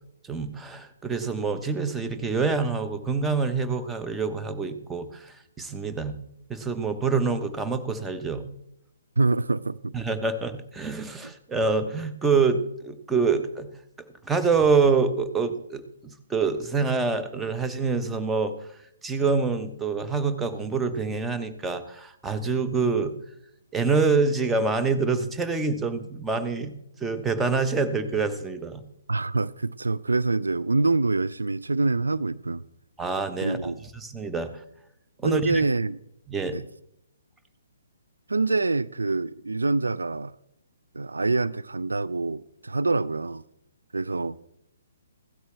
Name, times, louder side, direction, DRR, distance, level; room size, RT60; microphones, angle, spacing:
voice 1, 0.3-6.2 6.5-8.5 9.9-13.7 14.2-18.5 19.0-23.1 23.7-26.7 27.0-28.8 33.0-34.6 35.2-35.6 36.3-36.6, right 4 dB, 10° right, 1.0 m, -26 dB
voice 2, 9.2-9.9 29.1-32.6 33.4-33.8 35.2-36.0 36.5-36.6 38.3-40.3 40.9-43.4 43.9-44.4, right 3 dB, 75° right, 0.4 m, -25 dB
16.5 x 12.5 x 3.3 m
figure-of-eight pair, 130°, 0 cm